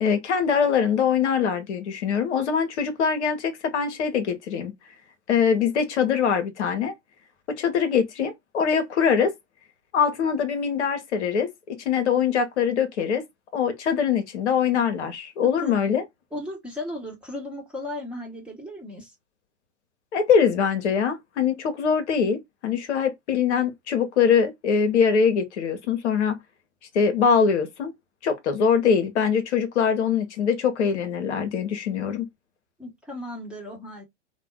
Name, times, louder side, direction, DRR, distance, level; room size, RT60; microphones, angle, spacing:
voice 1, 0.0-4.7 5.3-6.9 7.6-9.3 9.9-13.2 13.5-16.0 20.1-26.4 26.9-27.9 28.2-32.3, left 6 dB, 65° left, 0.9 m, -23 dB
voice 2, 16.3-19.1 32.8-34.0, left 1 dB, 5° right, 1.1 m, -35 dB
2.6 x 2.2 x 3.2 m
hypercardioid pair, 105°, 37 cm